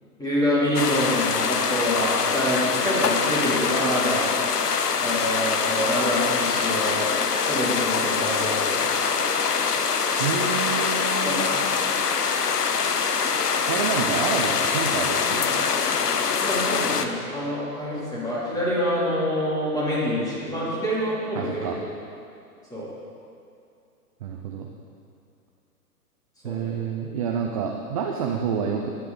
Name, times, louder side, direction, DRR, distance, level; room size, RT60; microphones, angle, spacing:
voice 1, 0.2-4.3 4.9-7.0 7.5-8.9 11.2-11.6 16.3-21.8 22.7-22.9 26.4-26.8, equal, 10° left, -8 dB, 3.5 m, -26 dB
sound 1, 0.7-17.0, left 5 dB, 80° left, 1.0 m, -24 dB
voice 2, 10.2-11.6 13.7-15.7 21.3-21.8 24.2-24.7 26.4-28.9, right 6 dB, 25° right, 2 dB, 0.5 m, -28 dB
16.5 x 10.5 x 4.1 m, 2.5 s
figure-of-eight pair, 125°, 47 cm